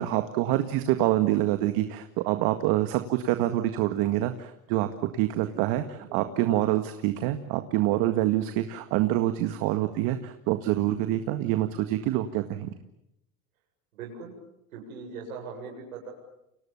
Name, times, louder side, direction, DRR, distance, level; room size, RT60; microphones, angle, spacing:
voice 1, 0.0-4.9 5.1-12.7, right 14 dB, 60° right, 8 dB, 2.0 m, -26 dB
voice 2, 5.4-6.2 13.9-14.3 14.7-16.1, right 5 dB, 90° right, 0 dB, 7.9 m, -41 dB
30.0 x 26.0 x 7.1 m, 0.82 s
supercardioid pair, 105°, 41 cm